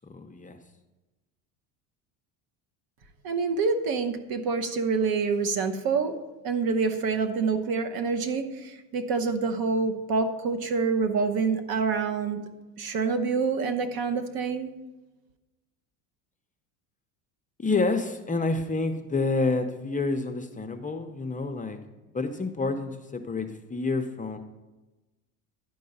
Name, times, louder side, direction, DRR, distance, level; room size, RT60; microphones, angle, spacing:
voice 1, 0.0-0.6 17.6-21.8 22.1-24.4, left 3 dB, 15° left, 5 dB, 0.7 m, -28 dB
voice 2, 3.2-6.1 6.4-12.4 12.8-14.7, right 4 dB, 50° right, 9 dB, 1.0 m, -27 dB
11.0 x 4.6 x 5.4 m, 1.1 s
supercardioid pair, 90°, 46 cm